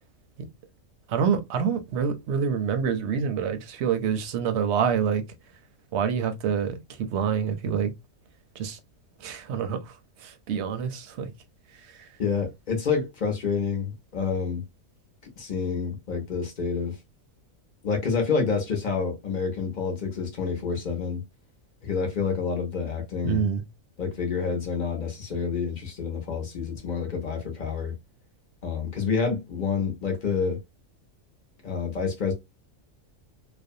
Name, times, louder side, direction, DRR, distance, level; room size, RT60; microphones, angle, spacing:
voice 1, 1.1-5.2 5.9-7.9 8.6-8.8 9.2-9.9 10.2-11.3 23.2-23.6, right 7 dB, 65° right, 0.8 m, -26 dB
voice 2, 12.2-14.6 15.4-17.0 17.8-21.2 21.8-23.4 24.0-28.0 28.6-30.6 31.6-32.3, left 5 dB, 45° left, 0.7 m, -28 dB
2.5 x 2.1 x 2.5 m
omnidirectional pair, 1.4 m